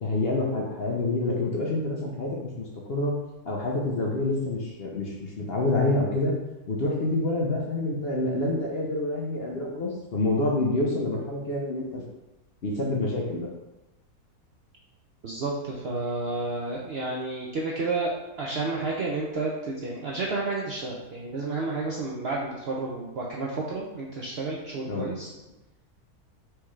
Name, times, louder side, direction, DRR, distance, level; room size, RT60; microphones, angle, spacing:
voice 1, 0.0-2.3 2.6-3.2 3.4-6.3 6.7-12.0 12.6-13.5 24.9-25.1, left 2 dB, 55° left, -2 dB, 0.7 m, -27 dB
voice 2, 15.2-25.3, right 3 dB, 65° right, -3 dB, 0.6 m, -31 dB
4.6 x 3.5 x 3.1 m, 1.0 s
omnidirectional pair, 1.6 m